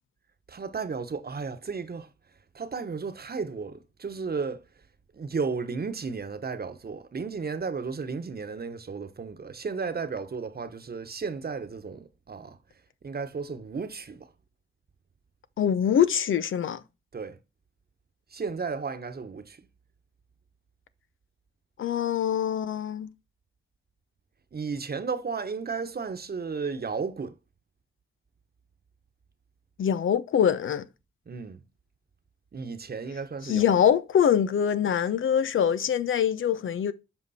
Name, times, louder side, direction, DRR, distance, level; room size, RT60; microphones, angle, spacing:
voice 1, 0.5-2.1 2.5-4.6 5.1-12.6 13.0-14.3 17.1-17.4 18.3-19.6 24.5-27.3 31.3-31.6 32.5-33.7, right 5 dB, 50° right, 1.1 m, -34 dB
voice 2, 15.6-16.8 21.8-23.1 29.8-30.9 33.5-36.9, left 8 dB, 85° left, 0.7 m, -24 dB
7.9 x 5.3 x 4.2 m
cardioid pair, 60°, 20 cm